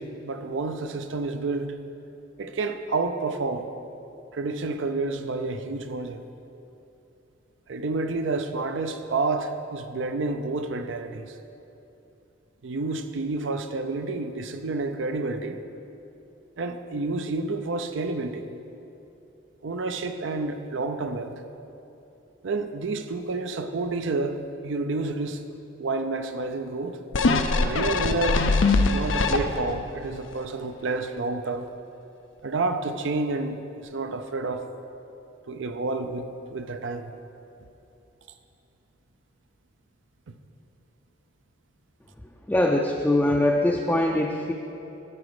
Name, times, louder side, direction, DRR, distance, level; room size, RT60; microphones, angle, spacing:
voice 1, 0.0-1.7 2.4-3.7 4.3-6.2 7.7-11.3 12.6-15.6 16.6-18.5 19.6-21.3 22.4-25.4 25.8-27.0 27.5-28.4 28.8-31.7 32.4-33.6 33.9-34.7 35.5-37.1, right 3 dB, 75° right, 8 dB, 0.5 m, -29 dB
sound 1, 27.1-29.8 30.3-30.4, left 3 dB, 85° left, 0.6 m, -22 dB
voice 2, 42.5-44.5, left 1 dB, 10° left, 0 dB, 0.4 m, -22 dB
12.0 x 6.0 x 4.9 m, 2.8 s
head